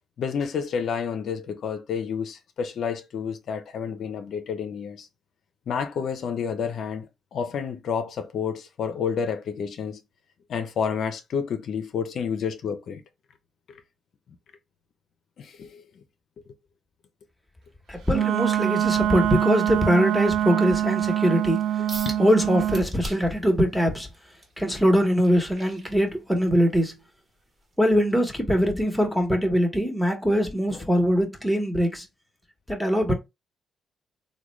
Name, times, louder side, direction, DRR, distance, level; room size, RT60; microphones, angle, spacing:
voice 1, 0.2-5.1 5.7-10.0 10.5-13.0 13.7-13.8 15.4-15.8 22.1-22.2 30.7-30.8, left 7 dB, 65° left, 0.5 m, -30 dB
voice 2, 17.9-21.8 22.2-24.1 24.6-27.0 27.8-32.1 32.7-33.1, equal, ahead, 1.0 m, -22 dB
Wind instrument woodwind instrument, 18.1-22.9, right 11 dB, 80° right, 0.4 m, -24 dB
sound 1, 21.9-22.2 22.7-23.4 23.9-26.5 27.0-27.2 27.7-27.8, right 1 dB, 35° right, 1.2 m, -39 dB
3.5 x 2.2 x 3.1 m
cardioid pair, 90°, 0 cm